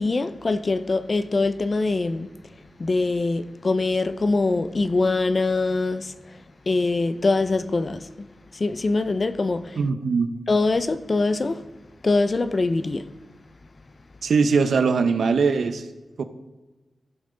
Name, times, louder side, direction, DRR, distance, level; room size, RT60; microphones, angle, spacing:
voice 1, 0.0-2.3 2.8-6.1 6.7-8.3 8.5-9.8 10.5-11.6 12.0-13.1, left 3 dB, 35° left, 0.5 m, -23 dB
voice 2, 9.8-10.3 14.2-15.8 16.2-16.3, right 5 dB, 75° right, 0.7 m, -21 dB
15.0 x 5.5 x 3.9 m
wide cardioid pair, 145°, 0 cm